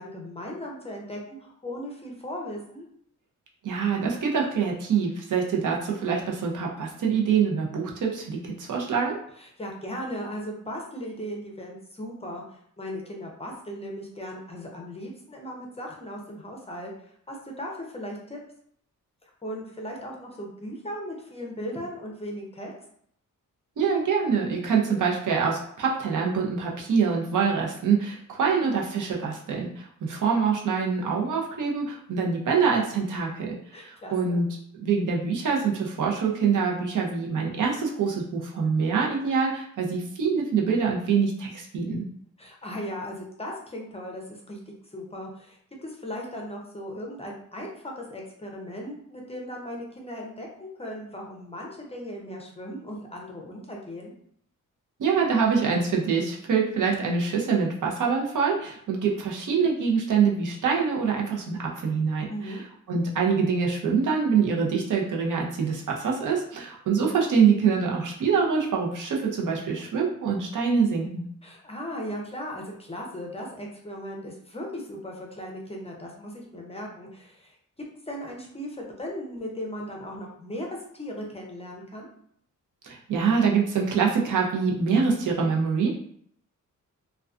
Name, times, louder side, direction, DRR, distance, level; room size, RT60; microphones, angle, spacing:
voice 1, 0.0-2.9 9.4-18.4 19.2-22.7 33.7-34.5 42.4-54.1 62.3-62.6 71.4-77.6 78.1-80.7 80.9-82.1, equal, 20° left, -1 dB, 0.5 m, -37 dB
voice 2, 3.6-9.2 23.8-34.5 34.8-42.0 55.0-62.6 62.9-71.2 82.8-86.0, right 5 dB, 70° right, -1 dB, 0.6 m, -25 dB
2.3 x 2.2 x 2.4 m, 0.66 s
cardioid pair, 100°, 32 cm